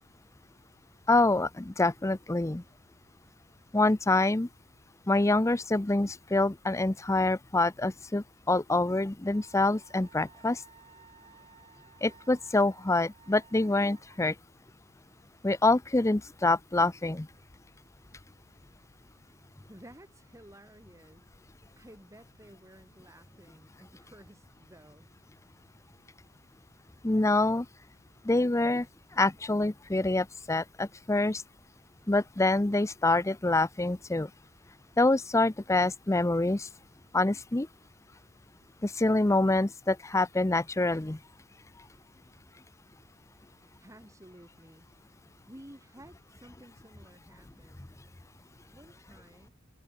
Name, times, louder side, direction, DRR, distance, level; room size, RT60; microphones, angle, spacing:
voice 1, 1.1-2.6 3.7-4.5 5.1-10.6 12.0-14.3 15.4-17.3 27.0-27.7 28.2-28.9 29.2-31.4 32.1-34.3 35.0-36.7 37.1-37.7 38.8-41.2, left 2 dB, 15° left, 0.6 m, -26 dB
Wind instrument woodwind instrument, 9.3-14.2, right 5 dB, 30° right, 3.2 m, -57 dB
voice 2, 19.7-21.2 21.8-25.1 43.8-44.9 45.5-47.9 48.7-49.5, right 1 dB, 15° right, 7.5 m, -53 dB
head